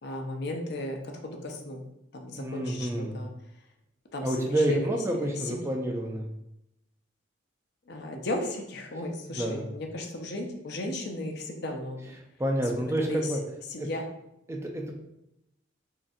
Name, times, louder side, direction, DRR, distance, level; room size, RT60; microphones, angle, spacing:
voice 1, 0.0-1.8 2.1-3.3 4.1-5.6 7.9-12.0 12.6-13.4 13.7-14.0, left 1 dB, 55° left, 3 dB, 0.5 m, -35 dB
voice 2, 2.3-3.2 4.2-6.3 9.3-9.6 12.4-13.4 13.8-13.9 14.5-14.9, right 1 dB, 15° right, 1 dB, 0.4 m, -29 dB
3.7 x 3.2 x 2.6 m, 0.84 s
head